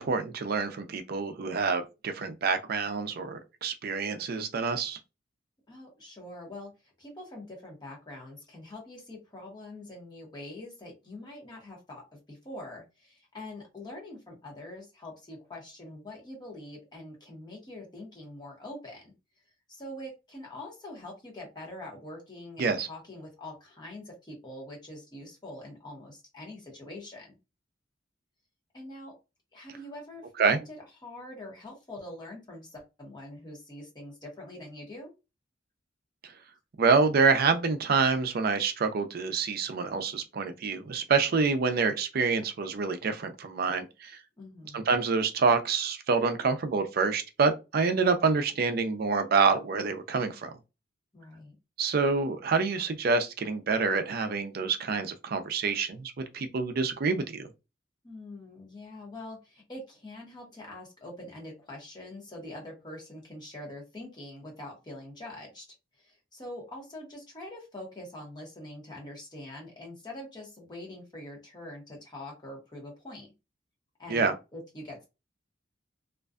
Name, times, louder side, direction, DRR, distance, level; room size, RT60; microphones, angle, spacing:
voice 1, 0.0-5.0 22.6-22.9 30.4-30.6 36.8-44.1 44.7-50.5 51.8-57.5 74.1-74.3, right 4 dB, 55° right, 0.4 m, -27 dB
voice 2, 5.7-19.1 19.7-27.4 28.7-29.2 29.5-35.1 44.4-44.9 51.1-51.6 58.0-65.7 66.0-73.3 74.0-75.1, left 1 dB, 25° left, 0.8 m, -44 dB
2.4 x 2.2 x 2.3 m
head